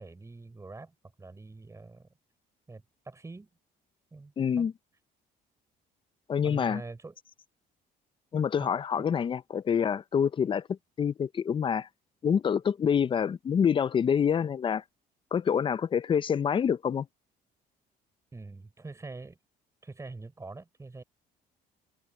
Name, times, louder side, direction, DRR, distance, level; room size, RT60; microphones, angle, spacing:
voice 1, 0.0-2.1 2.7-3.5 4.1-4.7 6.4-7.2 8.6-8.7 18.3-19.4 19.8-21.0, right 3 dB, 15° right, 5.7 m, -44 dB
voice 2, 4.4-4.7 6.3-6.8 8.3-11.9 12.2-14.8 15.3-17.1, left 7 dB, 30° left, 0.5 m, -27 dB
cardioid pair, 110°, 17 cm